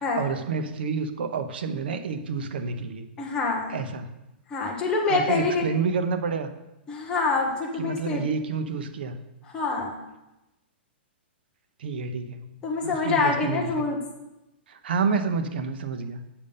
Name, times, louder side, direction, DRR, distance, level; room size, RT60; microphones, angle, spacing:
voice 1, 0.0-3.1 3.7-4.1 5.1-6.5 7.8-9.2 11.8-12.5 12.8-13.7 14.7-16.2, right 5 dB, 60° right, 8 dB, 0.7 m, -29 dB
voice 2, 3.2-3.8 4.5-5.7 6.9-8.3 9.5-10.0 12.6-14.0, left 3 dB, 10° left, -1 dB, 0.7 m, -26 dB
7.0 x 5.3 x 5.3 m, 0.96 s
hypercardioid pair, 175°, 6 cm